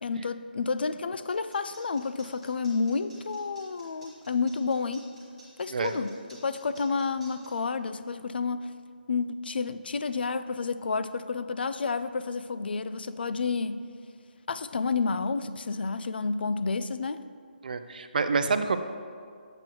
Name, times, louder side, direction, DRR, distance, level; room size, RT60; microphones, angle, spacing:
voice 1, 0.0-5.1 5.6-8.7 9.1-13.8 14.5-17.2, left 4 dB, 70° left, 12 dB, 0.3 m, -30 dB
sound 1, 1.3-7.5, right 1 dB, 5° left, 1.6 m, -54 dB
voice 2, 17.6-18.8, right 4 dB, 55° right, 9 dB, 0.5 m, -27 dB
7.8 x 7.8 x 2.9 m, 2.2 s
hypercardioid pair, 170°, 5 cm